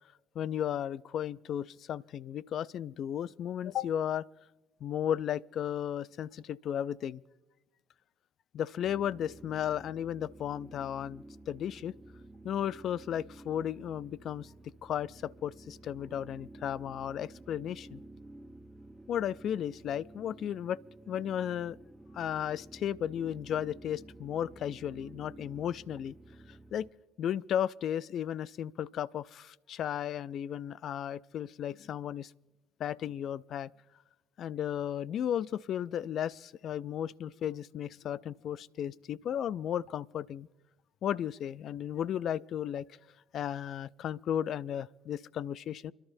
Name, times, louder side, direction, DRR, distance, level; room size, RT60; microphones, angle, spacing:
voice 1, 0.4-4.3 4.8-7.2 8.5-11.9 12.4-14.5 14.8-18.0 19.1-20.8 21.1-21.8 22.1-26.1 26.5-26.9 27.2-32.3 32.8-33.7 34.4-40.5 41.0-42.9 43.3-45.9, left 10 dB, 60° left, 0.4 m, -34 dB
sound 1, 8.8-26.9, right 1 dB, 15° right, 0.8 m, -52 dB
29.5 x 11.5 x 2.6 m
supercardioid pair, 70°, 0 cm